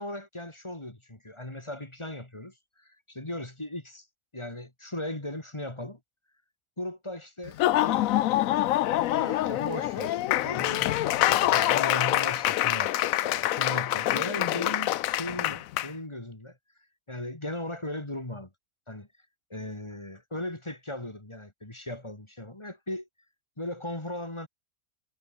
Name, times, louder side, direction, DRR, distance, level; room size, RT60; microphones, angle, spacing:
voice 1, 0.0-4.1 4.3-6.0 6.8-8.1 9.1-10.2 10.4-16.6 17.1-18.5 18.9-19.1 19.5-23.1 23.6-24.5, left 1 dB, 20° left, 2.5 m, -37 dB
Laughter / Applause, 7.5-15.9, left 14 dB, 75° left, 1.0 m, -25 dB
omnidirectional pair, 1.5 m